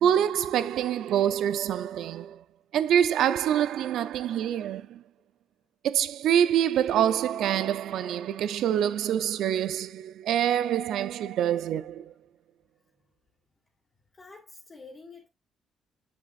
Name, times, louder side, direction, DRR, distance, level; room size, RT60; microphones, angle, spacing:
voice 1, 0.0-2.4 2.7-5.0 5.8-12.1, right 10 dB, 80° right, 0.6 m, -26 dB
voice 2, 4.6-5.0 8.1-8.3 14.1-15.3, left 3 dB, 30° left, 2.2 m, -50 dB
7.6 x 7.4 x 2.5 m
cardioid pair, 90°, 0 cm